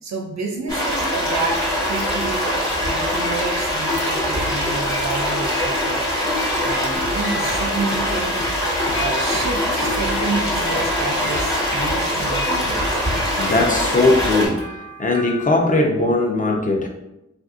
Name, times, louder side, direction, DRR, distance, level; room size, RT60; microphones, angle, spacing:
voice 1, 0.0-2.5 2.8-6.0 6.6-8.4 8.9-13.0, right 3 dB, 65° right, 1 dB, 0.4 m, -29 dB
sound 1, 0.7-14.5, equal, 10° left, 1.2 m, -23 dB
sound 2, 3.9-15.6, left 1 dB, 50° left, 1.0 m, -36 dB
sound 3, 7.0-14.6, right 1 dB, 75° left, 0.7 m, -36 dB
voice 2, 13.4-14.7 15.0-16.9, left 2 dB, 30° left, 1 dB, 0.5 m, -19 dB
3.3 x 2.5 x 2.4 m, 0.90 s
wide cardioid pair, 70°, 29 cm